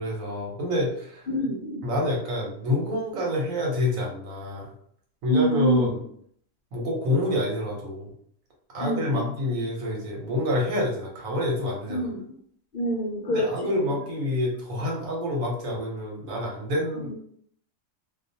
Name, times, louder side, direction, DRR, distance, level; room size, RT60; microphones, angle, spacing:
voice 1, 0.0-1.3 1.8-4.7 5.2-6.0 6.7-8.1 8.7-12.1 13.3-17.1, left 1 dB, 80° right, -2 dB, 1.2 m, -27 dB
voice 2, 1.3-1.8 5.3-5.9 8.8-9.3 11.9-12.2 12.7-13.9 17.0-17.1, right 1 dB, 60° left, -3 dB, 0.6 m, -26 dB
2.4 x 2.4 x 2.6 m, 0.63 s
omnidirectional pair, 1.4 m